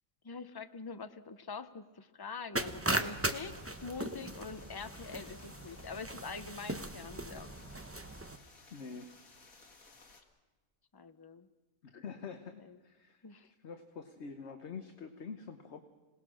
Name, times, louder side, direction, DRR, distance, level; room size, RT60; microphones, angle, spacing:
voice 1, 0.2-7.5 10.9-11.5 12.6-12.8 13.2-13.5, left 5 dB, 25° left, 11 dB, 0.5 m, -45 dB
sound 1, 2.6-8.4, right 1 dB, 10° right, 0.8 m, -38 dB
sound 2, 2.9-10.2, left 3 dB, 80° left, 2.5 m, -59 dB
voice 2, 8.7-9.1 11.8-15.8, left 5 dB, 55° left, 7 dB, 1.3 m, -46 dB
26.5 x 18.5 x 6.3 m, 1.3 s
omnidirectional pair, 1.5 m